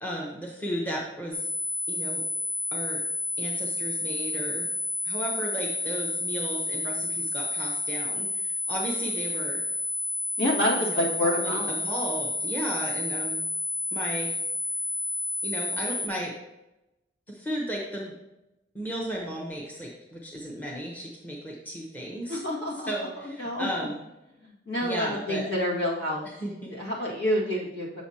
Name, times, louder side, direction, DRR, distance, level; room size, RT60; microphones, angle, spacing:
voice 1, 0.0-1.5 1.9-2.2 2.7-3.0 3.4-4.7 5.0-9.6 10.8-13.5 13.9-14.3 15.4-16.3 17.3-18.1 18.7-22.4 22.7-24.0 24.8-25.5 26.2-26.7, equal, 10° left, -3 dB, 0.9 m, -35 dB
sound 1, 1.3-16.1, left 2 dB, 15° right, 0.6 m, -30 dB
voice 2, 10.4-11.7 22.3-22.9 23.4-23.7 24.7-26.3 26.8-28.0, left 1 dB, 60° left, -4 dB, 2.0 m, -27 dB
7.2 x 6.0 x 2.9 m, 0.94 s
head